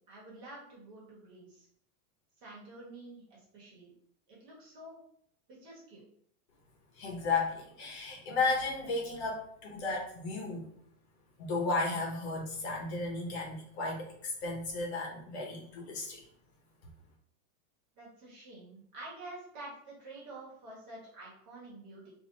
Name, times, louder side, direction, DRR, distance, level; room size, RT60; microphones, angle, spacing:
voice 1, 0.1-1.7 2.4-3.9 4.3-5.0 5.5-6.0 18.0-22.1, right 2 dB, 35° right, -5 dB, 1.4 m, -49 dB
voice 2, 7.0-10.7 11.4-16.2, left 3 dB, 50° left, -1 dB, 0.9 m, -34 dB
2.9 x 2.7 x 4.0 m, 0.66 s
supercardioid pair, 180°, 42 cm